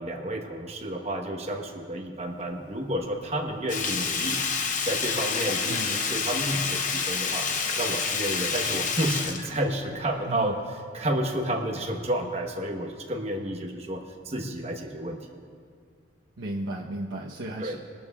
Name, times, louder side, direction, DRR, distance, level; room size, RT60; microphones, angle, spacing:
voice 1, 0.0-4.4 4.8-7.5 7.8-10.6 10.9-15.4 17.6-17.8, right 1 dB, 30° right, 2 dB, 1.1 m, -31 dB
Sink (filling or washing), 3.7-10.2 10.5-10.6, left 5 dB, 40° left, 0.8 m, -29 dB
voice 2, 5.6-6.1 10.1-10.5 16.4-17.8, right 1 dB, 85° right, -4 dB, 1.0 m, -35 dB
22.0 x 12.5 x 2.4 m, 2.1 s
head